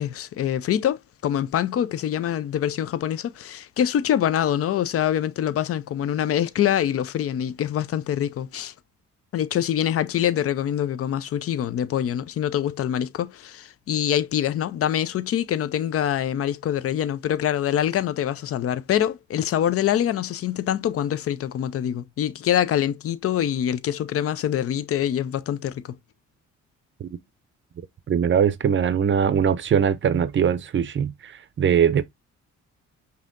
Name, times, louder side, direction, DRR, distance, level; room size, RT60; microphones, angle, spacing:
voice 1, 0.0-8.7 9.3-26.0, left 10 dB, 50° left, 0.5 m, -25 dB
voice 2, 28.1-32.0, right 8 dB, 40° right, 0.5 m, -21 dB
5.4 x 2.8 x 2.5 m
cardioid pair, 90°, 30 cm